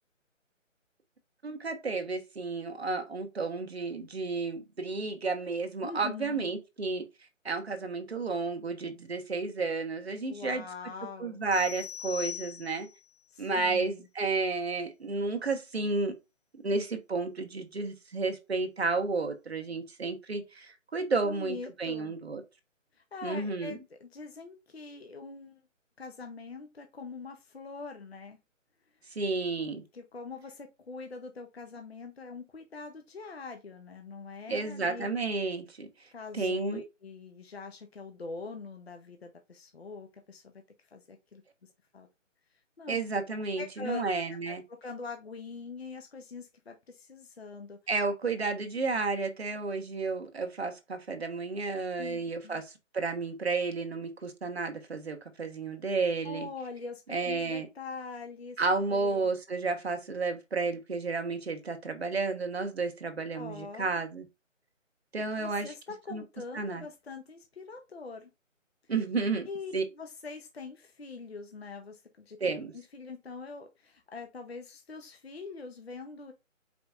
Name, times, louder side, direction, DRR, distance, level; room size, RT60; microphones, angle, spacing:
voice 1, 1.4-7.1 7.4-10.6 11.2-12.9 13.4-16.1 16.6-22.4 23.2-23.8 29.1-29.8 34.5-35.9 36.3-36.8 42.9-44.6 47.9-56.5 57.1-57.7 58.6-64.2 65.1-65.7 66.1-66.2 66.5-66.9 68.9-69.4 69.7-69.8 72.4-72.7, right 3 dB, 50° right, 1.0 m, -32 dB
voice 2, 5.8-6.5 10.3-11.4 13.3-14.1 21.1-22.1 22.9-25.6 26.0-28.4 29.0-29.2 29.9-35.1 36.1-40.6 40.9-42.1 42.5-42.9 43.6-44.1 44.5-47.8 52.0-52.6 56.2-58.6 58.9-59.3 63.3-64.0 65.4-68.3 69.4-72.4 72.7-76.3, left 4 dB, 50° left, 0.7 m, -43 dB
sound 1, 11.5-13.0, left 9 dB, 15° left, 2.0 m, -40 dB
5.0 x 3.4 x 2.3 m
hypercardioid pair, 180°, 39 cm